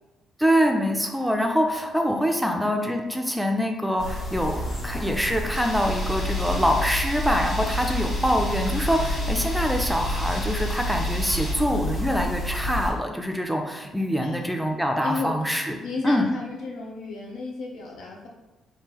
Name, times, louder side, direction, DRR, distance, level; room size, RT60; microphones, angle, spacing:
voice 1, 0.4-15.8 16.0-16.3, equal, ahead, 3 dB, 0.4 m, -25 dB
voice 2, 2.1-2.6 2.9-3.1 14.2-14.5 15.0-18.3, left 3 dB, 80° left, -1 dB, 0.7 m, -34 dB
sound 1, 4.0-12.9, left 1 dB, 60° left, 1.5 m, -29 dB
sound 2, 5.5-11.5, left 1 dB, 40° left, 1.1 m, -38 dB
3.6 x 2.7 x 2.9 m, 1.1 s
cardioid pair, 90°, 0 cm